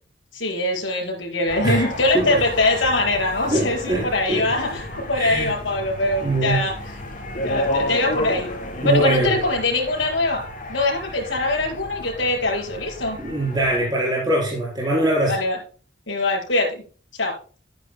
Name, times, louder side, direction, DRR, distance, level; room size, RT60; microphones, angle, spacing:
voice 1, 0.3-6.7 7.4-8.5 8.8-10.4 10.7-13.2 15.3-15.6 16.1-16.8 17.2-17.4, left 2 dB, 85° left, 1 dB, 4.9 m, -22 dB
sound 1, 1.5-13.8, left 1 dB, 45° left, 3.3 m, -32 dB
voice 2, 3.5-4.5 5.1-5.5 6.2-6.6 8.8-9.3 13.2-15.4, right 1 dB, 25° right, -5 dB, 4.2 m, -22 dB
14.5 x 9.6 x 2.2 m, 0.39 s
head